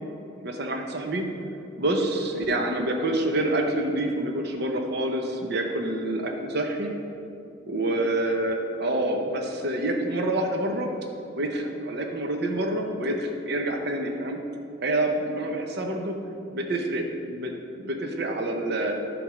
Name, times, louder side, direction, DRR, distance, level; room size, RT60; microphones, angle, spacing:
voice 1, 0.4-1.3 1.8-6.9 7.7-10.9 11.4-14.4 14.8-16.1 16.5-17.5 17.8-19.0, right 1 dB, 50° right, 2 dB, 0.8 m, -27 dB
10.5 x 3.5 x 6.1 m, 2.6 s
head